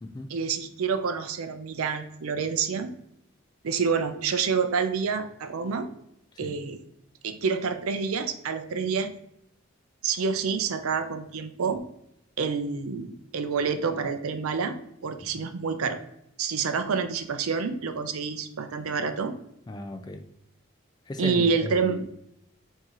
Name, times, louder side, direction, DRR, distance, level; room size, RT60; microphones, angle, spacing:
voice 1, 0.3-2.9 3.6-5.9 6.4-6.8 7.2-9.1 10.0-11.8 12.4-14.7 15.0-16.0 16.4-19.3 21.2-22.1, right 5 dB, 85° right, 0.5 m, -28 dB
voice 2, 19.7-20.3 21.1-22.1, left 2 dB, 20° left, 0.3 m, -36 dB
4.6 x 2.8 x 2.9 m
head